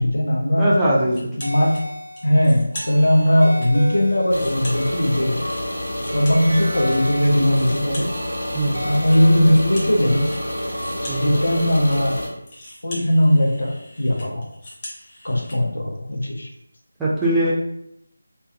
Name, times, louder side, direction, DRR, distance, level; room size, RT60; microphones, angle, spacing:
voice 1, 0.0-0.7 1.4-1.8 2.2-5.4 6.0-8.1 8.8-10.3 11.0-12.2 12.8-14.5 15.2-16.5, equal, 60° left, 0 dB, 0.6 m, -19 dB
voice 2, 0.6-1.2 8.5-8.8 11.1-11.4 17.0-17.5, right 1 dB, 5° right, -9 dB, 0.4 m, -20 dB
sound 1, 1.1-1.8 2.2-3.7 4.1-7.0 7.3-15.6, left 1 dB, 25° left, 0.8 m, -41 dB
sound 2, 1.4-12.1, equal, 80° right, 0.6 m, -34 dB
sound 3, 4.3-12.3, left 1 dB, 85° left, 1.1 m, -29 dB
2.5 x 2.1 x 2.6 m, 0.76 s
figure-of-eight pair, 160°, 0 cm